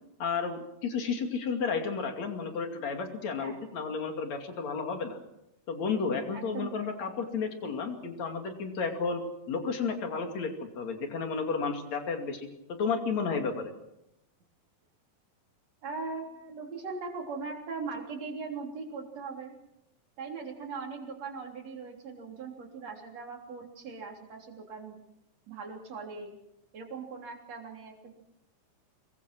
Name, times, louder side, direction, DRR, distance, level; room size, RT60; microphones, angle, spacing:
voice 1, 0.2-5.2 5.7-12.5 12.8-13.7, left 5 dB, 55° left, 5 dB, 3.6 m, -32 dB
voice 2, 3.3-3.7 6.3-7.0 15.8-19.5 20.2-25.0 25.5-26.3 26.7-28.1, right 4 dB, 50° right, 1 dB, 4.5 m, -40 dB
26.0 x 21.5 x 6.1 m, 0.85 s
omnidirectional pair, 4.0 m